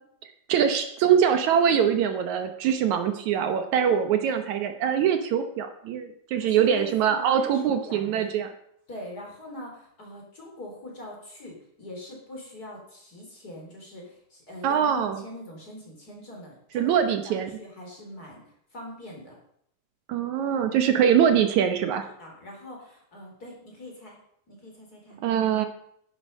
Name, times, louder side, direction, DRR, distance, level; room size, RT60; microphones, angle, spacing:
voice 1, 0.5-8.5 14.6-15.2 16.7-17.5 20.1-22.1 25.2-25.7, right 8 dB, 70° right, 7 dB, 2.2 m, -23 dB
voice 2, 6.4-8.3 8.9-19.4 22.2-24.2 24.5-25.2, left 1 dB, 30° left, -1 dB, 4.0 m, -42 dB
12.0 x 11.0 x 5.4 m, 0.69 s
omnidirectional pair, 3.6 m